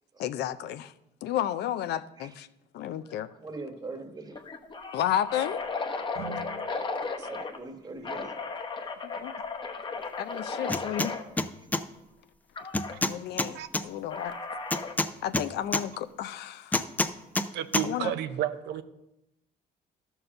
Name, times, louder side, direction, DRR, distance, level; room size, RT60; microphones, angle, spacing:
voice 1, 0.2-0.9 1.2-2.5 2.7-3.3 4.9-5.6 9.0-9.3 10.2-11.1 11.4-11.5 13.0-14.3 15.2-16.8 17.8-18.1, left 11 dB, 75° left, 13 dB, 0.5 m, -32 dB
sound 1, 3.1-3.4 3.7-3.8 4.3-7.6 8.0-11.2 12.6-13.0 14.1-15.0, left 4 dB, 25° left, 1.0 m, -35 dB
voice 2, 3.4-4.4 7.2-8.3, right 3 dB, 20° right, 6 dB, 1.2 m, -41 dB
sound 2, 6.1-8.3, right 2 dB, 60° right, 1.3 m, -45 dB
sound 3, 10.7-11.1 11.4-11.8 12.7-13.8 14.7-15.8 16.7-17.5 17.7-17.9, left 2 dB, 10° left, 0.4 m, -27 dB
voice 3, 17.5-18.8, right 10 dB, 85° right, 11 dB, 0.6 m, -31 dB
12.0 x 4.6 x 6.5 m, 0.91 s
cardioid pair, 115°, 17 cm